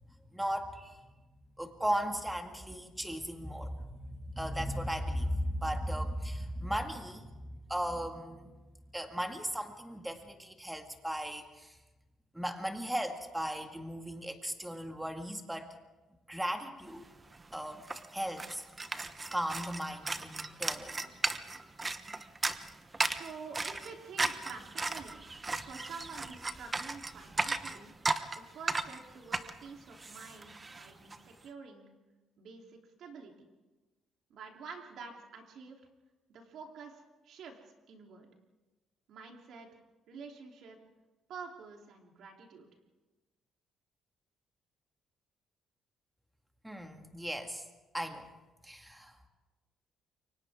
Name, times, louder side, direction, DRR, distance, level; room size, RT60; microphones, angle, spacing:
voice 1, 0.3-1.0 1.6-8.6 8.9-11.8 12.3-15.8 16.3-17.1 17.5-18.6 19.3-21.1 46.6-47.6 47.9-48.3 48.6-49.2, equal, 5° right, 4 dB, 2.1 m, -37 dB
sound 1, 17.0-17.1 17.3-31.2, right 3 dB, 20° right, 1.0 m, -36 dB
voice 2, 23.1-25.3 25.6-27.9 28.3-31.9 32.4-33.3 34.3-35.8 36.3-38.3 39.1-39.7 40.1-40.8 41.3-42.7, right 5 dB, 70° right, 1 dB, 3.5 m, -48 dB
28.5 x 24.5 x 3.7 m, 1.2 s
cardioid pair, 115°, 0 cm